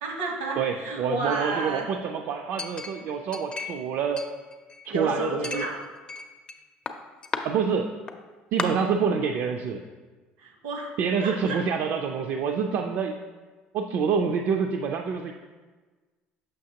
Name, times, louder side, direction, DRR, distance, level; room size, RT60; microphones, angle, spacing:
voice 1, 0.0-1.9 4.9-5.8 10.4-10.9 11.2-11.6, right 2 dB, 90° right, 2 dB, 1.1 m, -31 dB
voice 2, 0.6-4.3 4.9-5.6 7.4-7.9 8.5-9.8 11.0-13.2 13.7-15.3, right 6 dB, 65° right, 4 dB, 0.4 m, -27 dB
Chink clink, 2.6-3.9 4.2-4.9 5.4-6.6 6.9-7.4 8.1-8.2 8.6-8.7, left 4 dB, 25° left, 0.5 m, -34 dB
6.5 x 5.6 x 2.8 m, 1.3 s
supercardioid pair, 90°, 4 cm